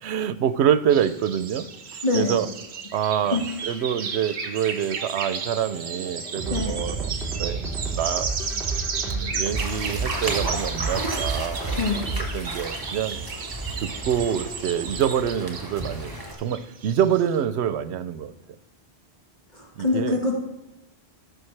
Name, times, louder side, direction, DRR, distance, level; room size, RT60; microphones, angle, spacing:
voice 1, 0.0-1.7 2.1-2.5 2.9-7.1 7.4-8.6 9.2-11.6 12.3-13.2 13.8-18.3 19.8-20.2, right 9 dB, 90° right, 13 dB, 0.8 m, -26 dB
sound 1, 0.9-17.4, right 6 dB, 60° right, 1.0 m, -34 dB
voice 2, 2.0-2.4 3.3-3.4 6.5-6.7 11.8-12.1 19.5-20.3, left 3 dB, 45° left, -1 dB, 1.4 m, -24 dB
sound 2, 2.9-12.7, right 3 dB, ahead, 2.9 m, -32 dB
sound 3, 9.5-16.3, right 2 dB, 20° right, 1.2 m, -34 dB
15.5 x 6.6 x 3.2 m, 1.0 s
omnidirectional pair, 1.1 m